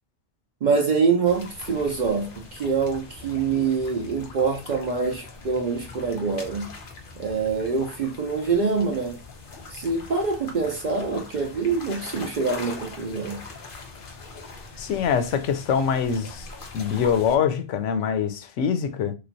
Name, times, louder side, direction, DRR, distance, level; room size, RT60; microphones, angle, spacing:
voice 1, 0.6-6.7 7.2-9.2 9.7-13.4, right 5 dB, 55° right, 0.5 m, -25 dB
sound 1, 1.3-17.3, left 3 dB, 50° left, 0.9 m, -42 dB
voice 2, 14.8-16.5 16.7-19.1, left 7 dB, 85° left, 0.9 m, -24 dB
3.3 x 3.0 x 2.5 m
omnidirectional pair, 1.2 m